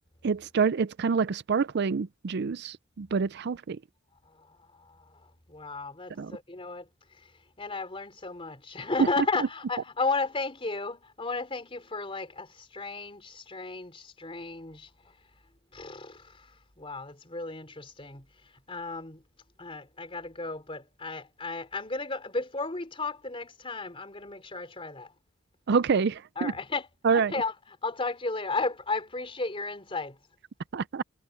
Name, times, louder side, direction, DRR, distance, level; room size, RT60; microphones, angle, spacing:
voice 1, 0.2-3.8 6.2-6.3 9.2-9.5 25.7-26.5 27.0-27.3 30.7-31.0, right 5 dB, 55° right, 0.5 m, -27 dB
voice 2, 4.8-5.2 5.5-6.9 7.6-14.9 15.7-16.5 16.8-18.2 18.7-19.2 19.6-25.1 26.4-27.5 27.8-30.2, left 3 dB, 25° left, 3.5 m, -34 dB
head